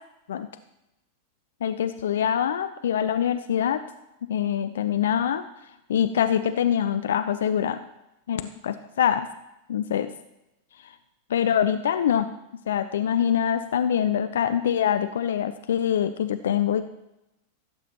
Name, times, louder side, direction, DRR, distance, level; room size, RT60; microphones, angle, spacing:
voice 1, 1.6-3.8 4.2-5.4 5.9-7.8 8.3-9.3 9.7-10.1 11.3-12.3 12.7-16.9, left 9 dB, 60° left, 10 dB, 0.4 m, -24 dB
17.0 x 8.2 x 2.9 m, 0.90 s
figure-of-eight pair, 90°, 0 cm